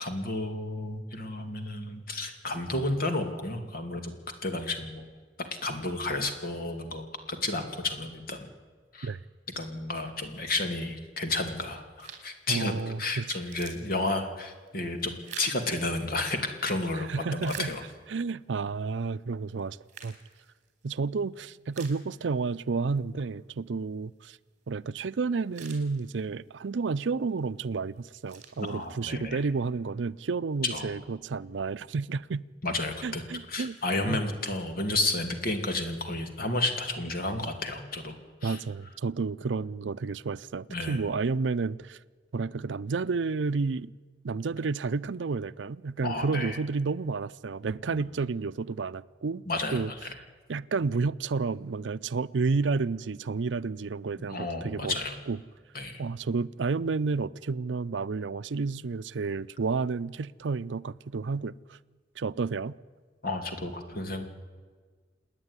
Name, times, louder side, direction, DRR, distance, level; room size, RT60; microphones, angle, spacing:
voice 1, 0.0-4.1 4.4-5.1 5.6-8.5 8.9-9.1 9.6-12.7 13.0-17.8 28.6-29.4 30.7-30.9 32.6-38.2 38.4-38.6 40.7-41.0 46.0-46.6 47.9-48.0 49.5-49.8 54.3-55.2 55.7-56.0 63.2-64.2, left 2 dB, 55° left, 2.6 m, -32 dB
sound 1, 12.0-12.4 12.9-13.0 13.3-16.5 17.0-18.3 18.8-18.9 19.6-20.9 21.3-21.4 21.7-22.6 22.9-23.0 25.0-25.1 25.3-26.5 27.1-27.4 27.9-29.2, right 7 dB, 45° right, 3.9 m, -47 dB
voice 2, 12.5-13.4 16.9-17.7 18.1-19.8 20.0-20.2 20.8-24.4 24.7-32.5 33.0-33.8 34.1-34.2 38.4-42.0 42.3-43.9 44.2-49.4 49.7-49.9 50.5-55.0 55.3-55.4 56.0-61.8 62.2-62.7, right 4 dB, 85° right, 0.5 m, -31 dB
28.0 x 9.8 x 9.8 m
head